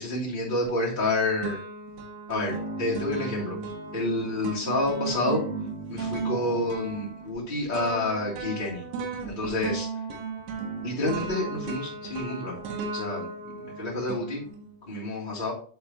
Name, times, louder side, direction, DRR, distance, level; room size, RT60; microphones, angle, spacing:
voice 1, 0.0-1.6 2.3-3.6 3.9-5.4 5.9-8.8 9.2-9.9 10.8-12.6 12.9-13.3 13.5-14.4 14.8-15.5, left 2 dB, 15° left, -8 dB, 1.6 m, -29 dB
sound 1, 0.6-1.1 1.4-14.8, right 4 dB, 70° right, 3.2 m, -35 dB
11.5 x 4.6 x 3.0 m, 0.43 s
omnidirectional pair, 5.8 m